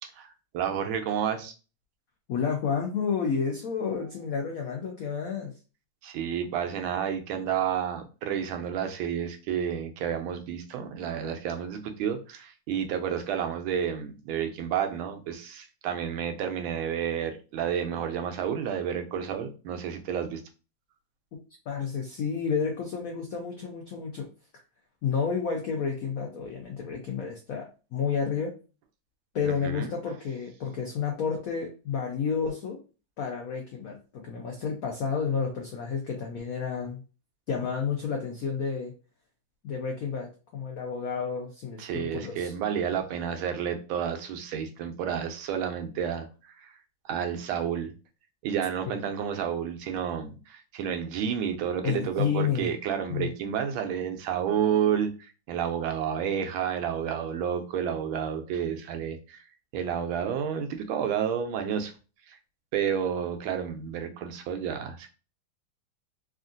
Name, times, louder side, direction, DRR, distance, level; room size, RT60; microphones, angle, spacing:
voice 1, 0.0-1.5 6.0-20.4 29.4-29.9 41.8-46.8 47.0-47.9 48.4-59.4 59.7-61.9 62.3-62.4 62.7-65.1, right 8 dB, 85° right, 1.4 m, -30 dB
voice 2, 2.3-5.5 21.7-24.3 25.0-28.5 29.3-32.8 33.2-37.0 37.5-38.9 39.6-42.5 48.9-49.0 51.8-52.7 53.1-53.3, left 6 dB, 85° left, 0.7 m, -30 dB
3.6 x 2.4 x 2.5 m
omnidirectional pair, 2.2 m